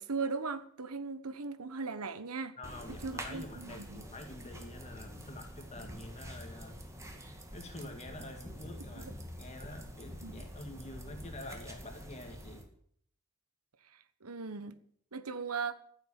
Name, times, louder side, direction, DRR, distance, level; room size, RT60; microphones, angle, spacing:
voice 1, 0.0-2.6 3.0-4.0 9.0-9.1 10.2-10.4 14.2-14.8 15.1-15.7, right 4 dB, 85° right, 1.2 m, -38 dB
voice 2, 2.6-6.8 7.5-12.7, left 2 dB, 30° left, 2.0 m, -47 dB
sound 1, 2.6-12.6, equal, 15° right, 2.1 m, -46 dB
15.0 x 7.7 x 8.9 m
head